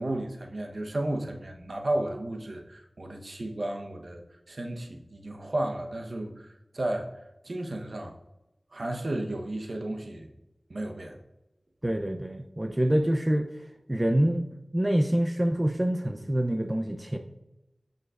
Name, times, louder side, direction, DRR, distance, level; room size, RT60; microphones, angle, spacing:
voice 1, 0.0-7.1 7.4-8.2 8.7-10.3 10.7-11.2, right 1 dB, 65° right, 3 dB, 0.9 m, -33 dB
voice 2, 11.8-17.2, right 1 dB, 25° right, 6 dB, 0.5 m, -26 dB
14.0 x 5.3 x 2.5 m, 0.93 s
wide cardioid pair, 60°, 0 cm